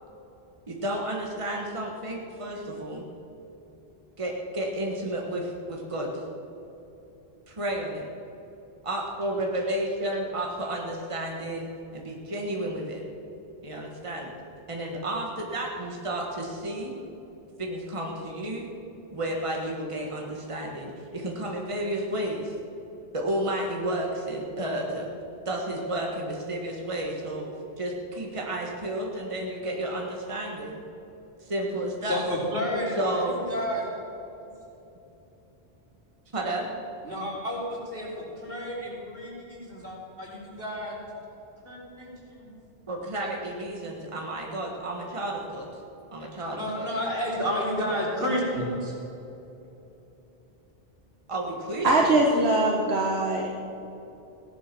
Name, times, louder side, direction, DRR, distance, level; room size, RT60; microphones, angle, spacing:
voice 1, 0.7-3.0 4.2-6.2 7.5-8.0 8.8-13.0 13.6-14.3 14.7-16.9 17.6-18.7 19.1-22.5 23.1-25.1 25.4-27.5 27.8-30.8 31.4-32.2 33.0-33.3 36.3-36.6 42.9-45.7 46.1-46.9 47.8-48.0 51.3-52.1, right 1 dB, 30° right, -1 dB, 1.6 m, -32 dB
voice 2, 32.0-33.8 37.0-38.1 38.4-40.9 41.6-42.5 46.5-48.9, equal, 65° right, -5 dB, 4.2 m, -31 dB
voice 3, 51.8-53.5, right 2 dB, 85° right, -1 dB, 1.5 m, -22 dB
17.0 x 11.5 x 6.1 m, 3.0 s
omnidirectional pair, 1.0 m